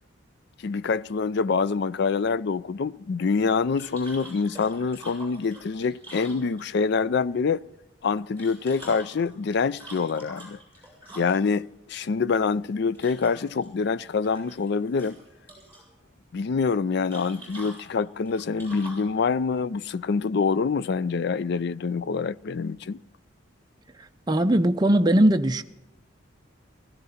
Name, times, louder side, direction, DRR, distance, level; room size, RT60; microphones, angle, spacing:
voice 1, 0.6-7.6 8.0-10.6 11.2-15.2 16.3-23.0, left 5 dB, 55° left, 0.4 m, -26 dB
sound 1, 3.8-6.9 8.2-11.6 12.9-13.7 14.0-14.7 15.0-15.8 17.1-19.1, right 1 dB, 10° left, 6.6 m, -45 dB
voice 2, 24.3-25.6, right 1 dB, 20° right, 0.5 m, -19 dB
17.0 x 14.5 x 4.2 m
head